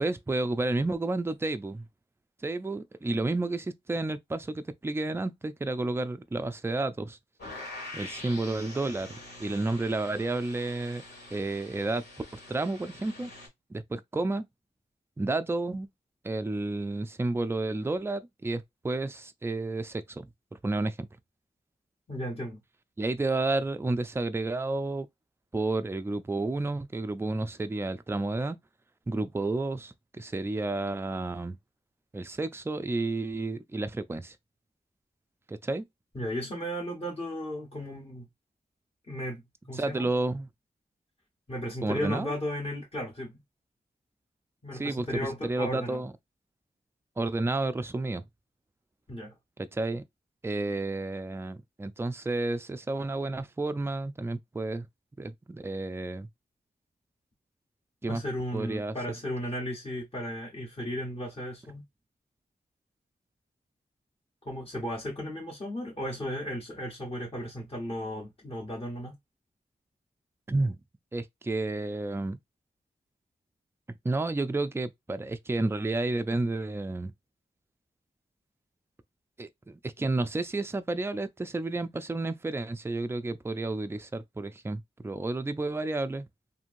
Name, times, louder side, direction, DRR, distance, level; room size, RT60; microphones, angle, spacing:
voice 1, 0.0-1.9 2.4-7.2 7.9-9.1 9.4-11.0 11.3-12.0 12.5-13.3 13.7-14.5 15.2-15.9 16.2-20.3 20.6-21.1 23.0-25.1 25.5-28.6 29.1-31.6 32.1-34.3 35.5-35.8 39.8-40.5 41.8-42.3 44.8-46.1 47.2-48.2 49.6-50.0 50.4-54.9 55.2-56.3 58.0-58.2 58.5-58.9 70.5-70.8 71.1-72.4 74.0-77.1 79.4-86.3, right 2 dB, 15° right, 0.3 m, -31 dB
sound 1, 7.4-13.5, left 2 dB, 70° left, 1.5 m, -45 dB
voice 2, 22.1-22.6 36.1-38.3 39.1-40.1 41.5-43.4 44.6-46.1 49.1-49.3 58.1-61.8 64.4-69.2, equal, 30° left, 1.1 m, -35 dB
3.0 x 2.6 x 2.5 m
wide cardioid pair, 95°, 18 cm